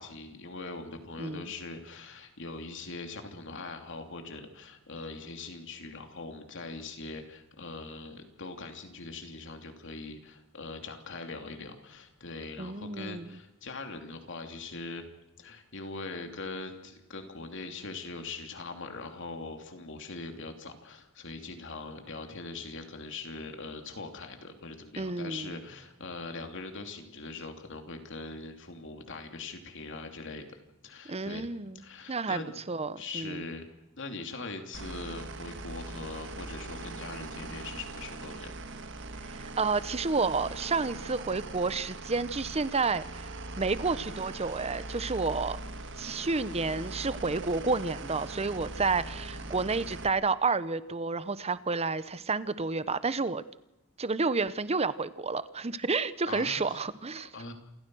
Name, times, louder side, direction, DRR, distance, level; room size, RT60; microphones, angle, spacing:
voice 1, 0.0-15.0 15.4-30.6 30.8-31.5 31.7-32.5 33.0-33.6 34.0-38.5 49.3-49.5 56.2-56.8 57.3-57.5, left 3 dB, 60° left, 5 dB, 3.0 m, -41 dB
voice 2, 12.6-13.4 25.0-25.6 31.1-31.8 32.1-32.4 32.7-33.4 39.3-43.3 43.6-45.6 46.0-53.4 54.0-57.3, right 4 dB, 30° right, 15 dB, 0.9 m, -30 dB
sound 1, 34.7-50.1, right 2 dB, 60° right, 1.6 m, -41 dB
28.5 x 14.5 x 6.3 m, 0.96 s
head